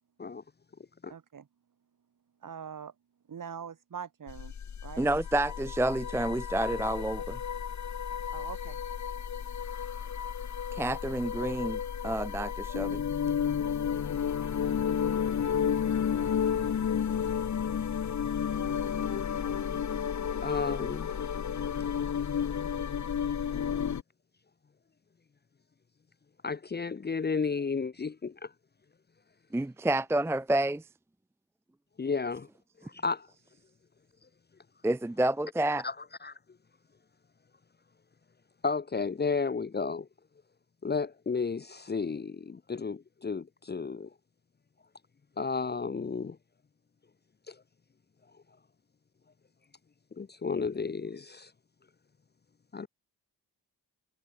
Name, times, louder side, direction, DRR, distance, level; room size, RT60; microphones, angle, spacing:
voice 1, 1.1-1.5 2.4-2.9 3.3-4.5 4.8-5.0 8.3-8.8, right 7 dB, 55° right, 5.9 m, -42 dB
sound 1, 4.3-24.0, left 8 dB, 45° left, 1.5 m, -32 dB
voice 2, 5.0-7.4 10.7-13.0 29.5-30.8 34.8-35.8, right 1 dB, 5° right, 0.6 m, -29 dB
voice 3, 20.4-21.1 26.4-28.5 32.0-32.5 32.8-33.3 35.8-35.9 36.2-36.3 38.6-40.1 40.8-44.1 45.4-46.4 47.5-47.6 50.2-51.5 52.7-52.9, left 4 dB, 25° left, 0.8 m, -32 dB
cardioid pair, 70°, 38 cm